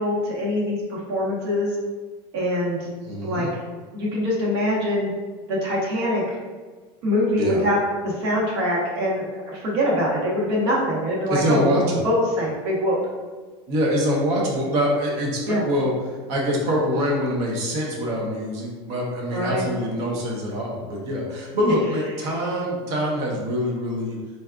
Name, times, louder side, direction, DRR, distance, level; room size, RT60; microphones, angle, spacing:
voice 1, 0.0-1.7 2.3-2.9 3.2-3.6 3.9-5.1 5.5-6.2 7.0-13.0 15.5-15.6 19.3-19.6, left 1 dB, 70° right, -4 dB, 1.1 m, -23 dB
voice 2, 3.0-3.5 7.4-7.6 11.3-12.0 13.7-24.2, equal, 50° right, -2 dB, 0.8 m, -24 dB
4.0 x 2.4 x 2.3 m, 1.4 s
supercardioid pair, 155°, 13 cm